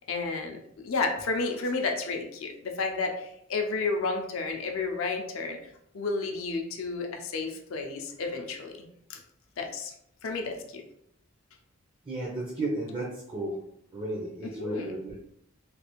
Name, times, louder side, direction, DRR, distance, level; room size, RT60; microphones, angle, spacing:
voice 1, 0.1-5.6 5.9-8.7 9.1-9.2 9.6-9.9 10.2-10.8 14.4-15.0, left 3 dB, 70° left, 3 dB, 0.5 m, -31 dB
voice 2, 12.1-13.5 13.9-15.2, right 2 dB, 25° right, -3 dB, 0.5 m, -33 dB
3.2 x 2.4 x 2.9 m, 0.74 s
head